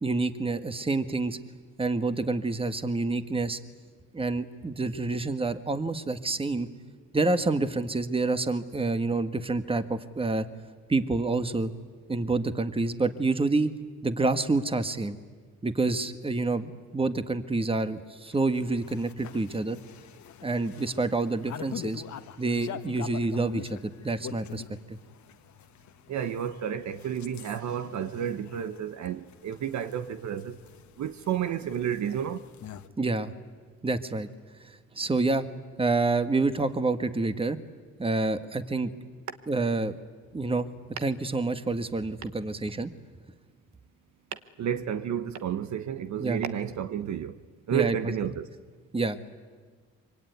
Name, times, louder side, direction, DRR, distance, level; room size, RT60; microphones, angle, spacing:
voice 1, 0.0-1.4 1.8-3.6 4.1-6.7 7.1-10.5 10.9-11.7 12.1-13.7 14.0-15.2 15.6-19.8 20.4-22.0 22.4-24.6 24.9-25.0 33.0-33.3 33.8-34.3 34.9-35.5 35.8-37.6 38.0-38.9 39.5-40.0 40.3-40.7 41.0-42.9 46.2-46.4 47.7-48.0 48.9-49.2, right 3 dB, 20° right, 1.5 m, -28 dB
sound 1, 18.3-32.9, left 10 dB, 70° left, 1.4 m, -45 dB
voice 2, 26.1-30.6 31.0-32.4 44.6-47.4 47.7-48.5, right 9 dB, 70° right, 1.2 m, -31 dB
25.5 x 24.0 x 9.5 m
cardioid pair, 90°, 30 cm